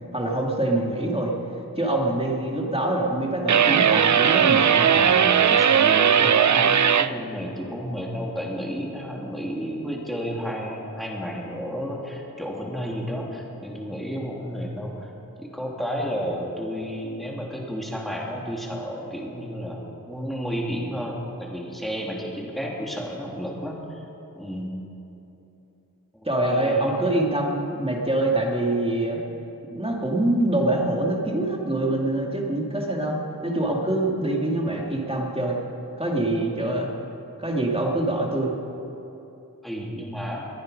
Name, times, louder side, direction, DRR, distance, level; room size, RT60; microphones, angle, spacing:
voice 1, 0.1-1.3 1.8-5.0 26.2-29.2 29.7-35.6 36.0-36.9 37.4-38.5, right 1 dB, 15° right, -1 dB, 2.3 m, -25 dB
sound 1, 3.5-7.1, right 8 dB, 55° right, 0.5 m, -18 dB
voice 2, 4.9-15.1 15.4-19.8 20.1-24.0 24.3-24.8 26.1-26.9 39.6-40.5, equal, ahead, -3 dB, 3.0 m, -32 dB
22.5 x 9.5 x 5.3 m, 3.0 s
wide cardioid pair, 45°, 36 cm